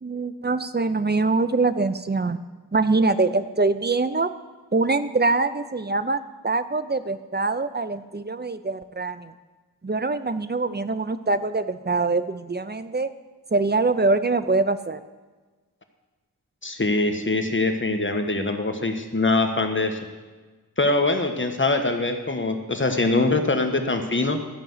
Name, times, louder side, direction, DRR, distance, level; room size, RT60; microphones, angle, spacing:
voice 1, 0.0-2.4 2.7-4.3 4.7-9.3 9.8-13.1 13.5-15.0, right 3 dB, 30° right, 12 dB, 0.6 m, -24 dB
voice 2, 16.6-20.0 20.8-24.4, left 2 dB, 30° left, 5 dB, 1.3 m, -23 dB
13.5 x 5.3 x 8.0 m, 1.3 s
wide cardioid pair, 60°, 36 cm